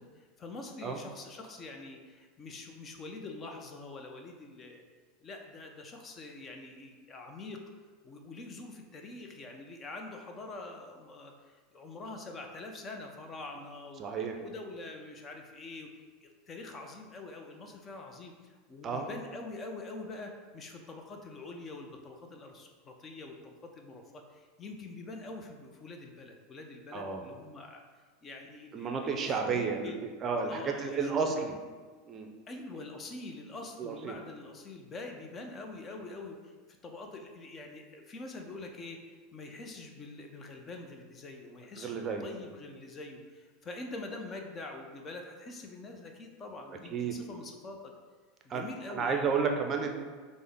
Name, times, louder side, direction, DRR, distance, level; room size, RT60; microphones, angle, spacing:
voice 1, 0.0-4.8 5.2-7.6 8.0-14.1 14.4-27.8 28.2-30.0 30.5-31.3 32.5-36.5 36.8-47.9 48.4-49.3, left 2 dB, 30° left, 3 dB, 0.5 m, -45 dB
voice 2, 14.0-14.4 18.8-19.1 26.9-27.2 28.7-29.9 30.2-31.6 32.1-32.3 33.8-34.2 41.8-42.2 46.9-47.2 48.5-48.6 48.9-50.0, right 5 dB, 35° right, 4 dB, 0.5 m, -31 dB
5.2 x 2.1 x 3.4 m, 1.4 s
hypercardioid pair, 105°, 0 cm